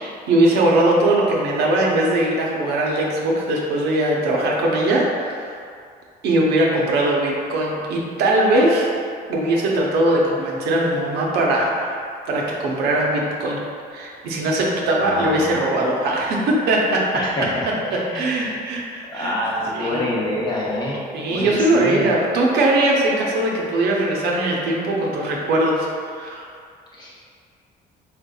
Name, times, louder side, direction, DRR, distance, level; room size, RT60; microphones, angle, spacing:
voice 1, 0.0-5.6 6.2-8.9 9.3-12.0 12.3-13.6 13.9-17.5 17.9-19.3 19.7-20.1 21.1-26.5, right 1 dB, 75° right, -2 dB, 0.7 m, -20 dB
voice 2, 15.0-15.4 17.1-18.6 19.1-21.0 21.3-22.1 27.0-27.1, left 1 dB, 25° left, -5 dB, 0.9 m, -27 dB
4.3 x 3.6 x 2.3 m, 2.2 s
cardioid pair, 110°, 17 cm